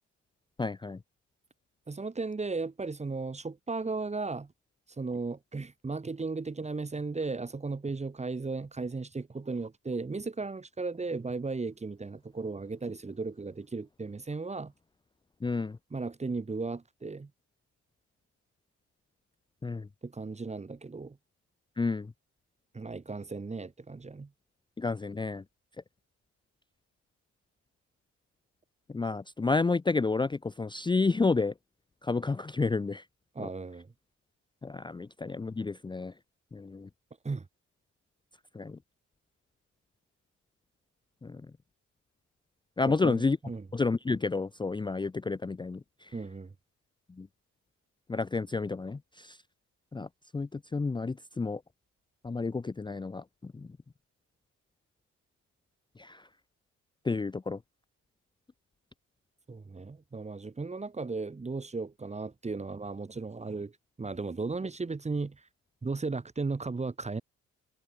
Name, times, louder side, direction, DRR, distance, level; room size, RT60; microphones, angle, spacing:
voice 1, 0.6-1.0 15.4-15.8 19.6-19.9 21.8-22.1 24.8-25.4 28.9-31.5 32.0-33.0 33.4-33.5 34.6-36.1 36.5-36.9 38.5-38.8 41.2-41.4 42.8-43.4 43.7-46.1 47.2-47.3 48.1-49.4 49.9-51.6 52.2-53.7 56.0-56.3 57.0-57.6, left 3 dB, 15° left, 0.6 m, -30 dB
voice 2, 1.9-4.5 5.0-14.7 15.9-17.3 20.0-21.2 22.7-24.3 33.3-33.9 37.2-37.5 42.9-43.6 46.1-46.5 59.5-63.7 64.0-65.5 65.8-67.2, right 3 dB, 20° right, 1.7 m, -35 dB
cardioid pair, 90°, 30 cm